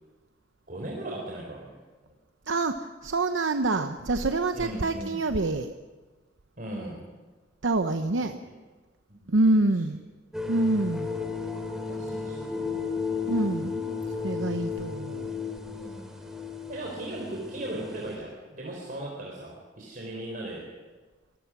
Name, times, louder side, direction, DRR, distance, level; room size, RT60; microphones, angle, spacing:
voice 1, 0.7-1.8 4.5-5.2 6.6-7.0 8.1-8.5 9.1-9.3 11.0-11.1 11.9-12.8 15.8-16.1 16.7-20.7, right 1 dB, 45° right, -1 dB, 3.8 m, -38 dB
voice 2, 2.5-5.8 7.6-8.4 9.3-10.0 10.5-11.2 13.3-15.4, right 2 dB, 85° right, 8 dB, 0.8 m, -26 dB
sound 1, 10.3-18.2, left 5 dB, 5° right, 2.6 m, -34 dB
25.0 x 20.0 x 6.1 m, 1.3 s
head